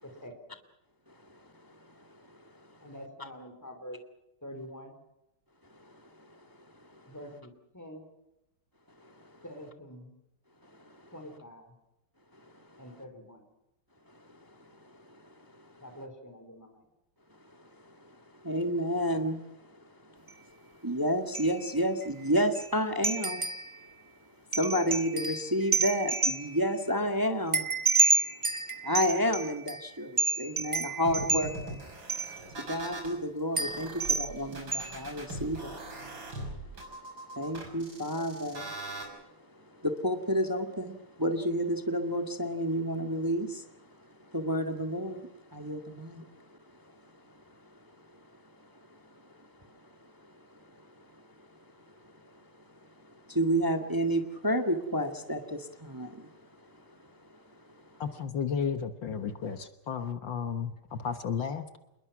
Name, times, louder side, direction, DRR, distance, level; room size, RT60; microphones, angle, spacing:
voice 1, 0.0-0.6 2.8-4.0 4.4-4.9 7.1-8.1 9.4-10.1 11.1-11.7 12.8-13.4 15.8-16.8, equal, 10° left, 5 dB, 4.6 m, -46 dB
voice 2, 18.4-19.4 19.7-19.8 20.5-20.6 20.8-23.5 24.5-27.7 28.8-31.8 32.7-35.7 37.3-38.7 39.8-43.6 44.3-46.4 48.6-49.0 49.4-49.5 50.5-50.7 53.3-56.3 57.7-57.8, equal, 10° right, 6 dB, 1.5 m, -30 dB
sound 1, 20.3-20.4 21.3-21.7 22.0-22.1 22.5-22.7 23.0-23.8 24.5-26.7 27.5-29.8 30.2-31.8 32.1-32.4 32.8-32.9 33.6-34.3 34.7-35.0, right 3 dB, 30° right, 0.6 m, -29 dB
sound 2, 31.0-33.1 33.5-39.0, right 2 dB, 65° right, 6.5 m, -41 dB
voice 3, 58.0-61.8, left 6 dB, 65° left, 9 dB, 1.9 m, -33 dB
27.5 x 21.5 x 6.1 m, 0.88 s
omnidirectional pair, 2.3 m